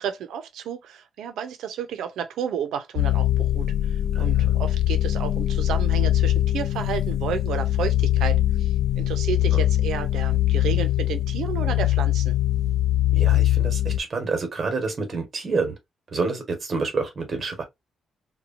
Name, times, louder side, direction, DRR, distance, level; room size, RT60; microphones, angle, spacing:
voice 1, 0.0-12.4, right 8 dB, 90° right, 0.6 m, -32 dB
sound 1, 3.0-14.0, left 13 dB, 80° left, 0.4 m, -22 dB
voice 2, 4.1-4.5 13.1-15.7 16.1-17.6, right 4 dB, 35° right, 1.1 m, -28 dB
2.9 x 2.2 x 2.6 m
cardioid pair, 140°, 0 cm